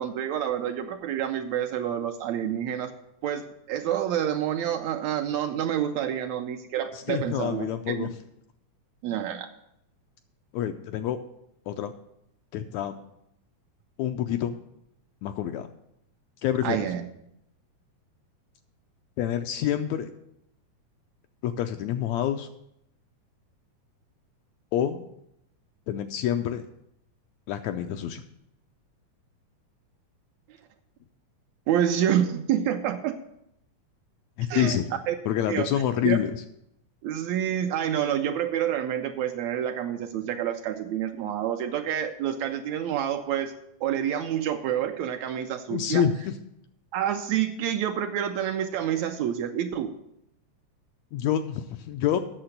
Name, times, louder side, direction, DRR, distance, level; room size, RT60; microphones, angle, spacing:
voice 1, 0.0-2.9 3.2-8.1 9.0-9.5 16.6-17.0 31.7-33.2 34.5-34.8 35.1-35.2 35.5-35.7 36.0-36.2 37.0-43.5 43.8-46.0 46.9-49.9, right 10 dB, 75° right, 6 dB, 1.7 m, -28 dB
voice 2, 6.9-8.1 10.5-11.2 11.7-11.9 12.5-13.0 14.0-14.6 15.2-15.7 16.4-16.8 19.2-20.1 21.4-22.5 24.7-25.1 25.9-26.6 27.5-28.2 34.4-34.8 35.2-36.4 45.7-46.4 51.1-52.2, left 10 dB, 80° left, 7 dB, 1.7 m, -27 dB
8.7 x 6.7 x 7.9 m, 0.79 s
omnidirectional pair, 3.5 m